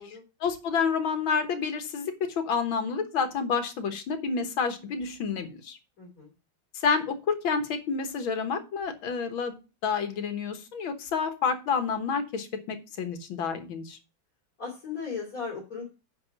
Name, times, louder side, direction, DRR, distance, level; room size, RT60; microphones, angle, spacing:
voice 1, 0.1-5.8 6.8-9.6 9.8-14.0, left 5 dB, 85° left, 8 dB, 2.0 m, -29 dB
voice 2, 6.0-6.3 14.6-15.8, left 5 dB, 45° left, -4 dB, 3.5 m, -36 dB
9.6 x 4.8 x 5.9 m, 0.31 s
omnidirectional pair, 2.1 m